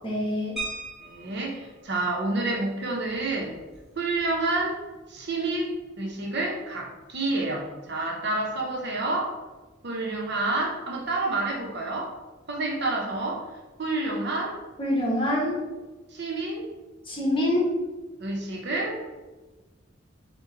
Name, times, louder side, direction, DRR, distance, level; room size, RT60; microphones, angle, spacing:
voice 1, 0.0-0.5 14.8-15.6 17.1-17.7, left 1 dB, 25° left, -3 dB, 1.1 m, -25 dB
sound 1, 0.6-1.6 3.1-3.2 3.5-3.7 4.1-4.4, right 2 dB, ahead, 1.4 m, -37 dB
voice 2, 1.0-3.5 4.0-4.8 5.1-9.3 9.8-12.1 12.5-13.4 13.8-14.6 16.1-16.7 18.2-19.0, right 2 dB, 60° right, -1 dB, 0.8 m, -29 dB
5.4 x 2.3 x 3.8 m, 1.2 s
head